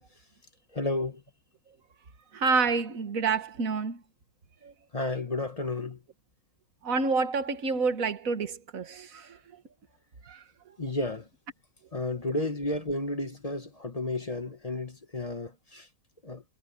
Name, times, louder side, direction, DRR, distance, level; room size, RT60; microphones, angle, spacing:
voice 1, 0.7-1.2 4.9-6.0 10.8-11.3 11.9-15.9 16.2-16.4, left 2 dB, 25° left, 1.4 m, -32 dB
voice 2, 2.3-4.0 4.6-4.7 6.8-9.3 10.3-10.4, right 4 dB, 60° right, 2.0 m, -28 dB
omnidirectional pair, 1.6 m